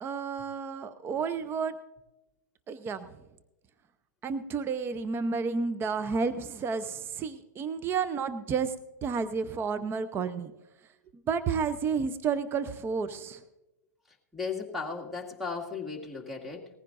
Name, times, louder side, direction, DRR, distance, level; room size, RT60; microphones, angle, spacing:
voice 1, 0.0-1.8 2.7-3.1 4.2-8.7 9.0-10.5 11.3-13.4, right 5 dB, 25° right, 14 dB, 0.7 m, -31 dB
voice 2, 14.3-16.7, left 4 dB, ahead, 2 dB, 2.1 m, -36 dB
19.5 x 15.0 x 2.6 m, 0.96 s
hypercardioid pair, 110°, 10 cm